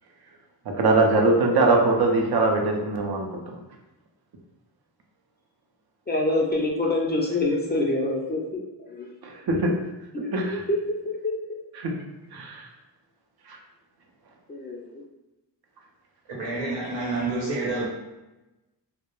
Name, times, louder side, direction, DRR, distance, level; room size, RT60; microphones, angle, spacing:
voice 1, 0.7-3.6 9.2-9.7 10.3-10.6 11.8-11.9 12.3-12.7 13.5-13.6, right 2 dB, 60° right, 1 dB, 0.6 m, -22 dB
voice 2, 6.1-9.1 10.1-10.8 11.0-11.3 14.5-14.9, left 2 dB, 25° left, -2 dB, 0.4 m, -26 dB
voice 3, 16.3-17.9, right 2 dB, 80° right, -4 dB, 0.9 m, -28 dB
2.2 x 2.0 x 3.0 m, 1.0 s
cardioid pair, 75°, 43 cm